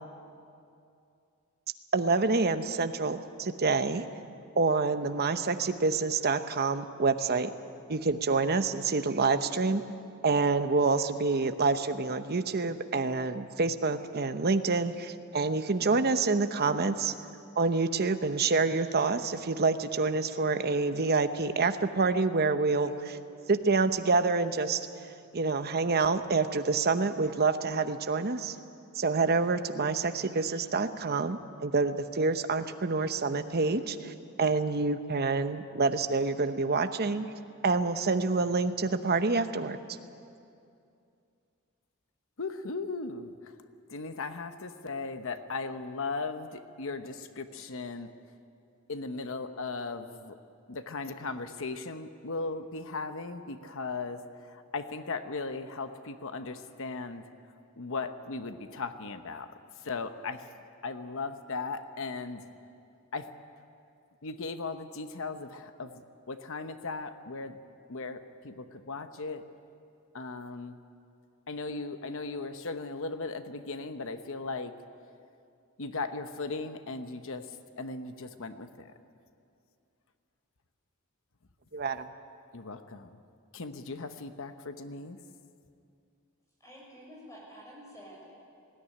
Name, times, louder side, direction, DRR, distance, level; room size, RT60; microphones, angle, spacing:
voice 1, 1.9-4.0 4.6-7.5 7.9-9.8 10.2-17.1 17.6-23.2 23.5-24.9 25.3-28.6 28.9-37.3 37.6-39.8 81.7-82.1, right 4 dB, 45° right, 9 dB, 0.9 m, -27 dB
voice 2, 42.4-43.5 43.9-48.1 48.9-50.4 50.7-57.2 57.8-59.5 59.8-60.5 60.8-62.5 63.1-63.3 64.2-66.0 66.3-67.6 67.9-69.4 70.1-70.8 71.5-74.7 75.8-77.5 77.8-78.9 82.5-83.2 83.5-85.2, left 3 dB, 65° left, 9 dB, 1.0 m, -37 dB
voice 3, 86.6-88.4, equal, 15° left, -3 dB, 6.7 m, -49 dB
19.5 x 16.5 x 9.9 m, 2.5 s
head